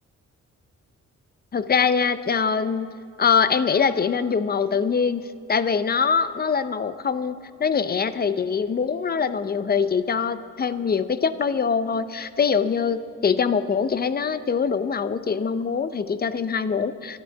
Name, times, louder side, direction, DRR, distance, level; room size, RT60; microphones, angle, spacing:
voice 1, 1.5-17.2, left 6 dB, 30° left, 13 dB, 0.6 m, -23 dB
13.0 x 10.5 x 8.2 m, 2.4 s
cardioid pair, 125°, 30 cm